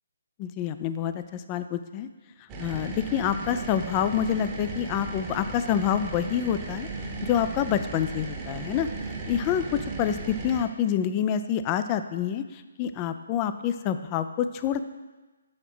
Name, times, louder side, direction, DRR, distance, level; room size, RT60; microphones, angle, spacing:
voice 1, 0.4-2.1 2.6-6.9 7.2-8.9 9.2-14.8, left 9 dB, 25° left, 11 dB, 0.4 m, -27 dB
sound 1, 2.5-10.6, right 3 dB, 20° right, 0.9 m, -36 dB
6.4 x 4.4 x 6.0 m, 1.2 s
figure-of-eight pair, 140°, 0 cm